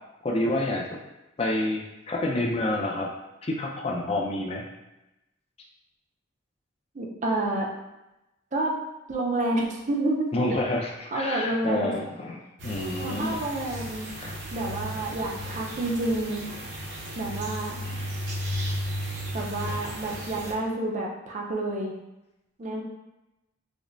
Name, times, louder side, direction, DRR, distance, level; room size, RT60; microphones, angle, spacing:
voice 1, 0.2-1.0 1.4-3.1 3.4-4.6 10.3-13.4 14.2-14.3, left 1 dB, 30° left, 0 dB, 0.4 m, -28 dB
voice 2, 6.9-7.7 8.5-8.8 9.1-10.6 11.1-11.9 13.0-14.1 14.5-16.5 17.2-17.8 19.3-22.0 22.6-22.8, right 2 dB, 35° right, 0 dB, 0.5 m, -29 dB
sound 1, 12.6-20.5, equal, 65° right, 0.8 m, -34 dB
5.0 x 2.0 x 2.6 m, 0.96 s
head